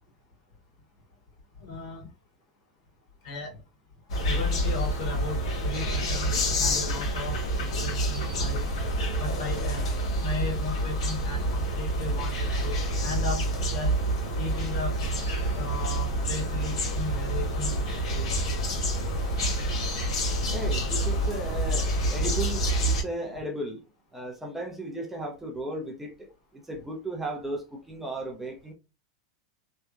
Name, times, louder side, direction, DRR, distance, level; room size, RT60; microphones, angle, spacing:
voice 1, 1.6-2.1 3.2-3.6 4.2-8.7 9.2-9.9 10.2-13.4 13.7-13.9 14.4-15.0 15.5-17.8 18.1-18.3, left 3 dB, 55° left, 1.4 m, -36 dB
sound 1, 4.1-23.0, right 1 dB, 75° left, 1.0 m, -28 dB
voice 2, 20.5-23.8 24.1-28.7, right 1 dB, 10° right, 0.6 m, -35 dB
2.8 x 2.1 x 2.3 m
hypercardioid pair, 115°, 3 cm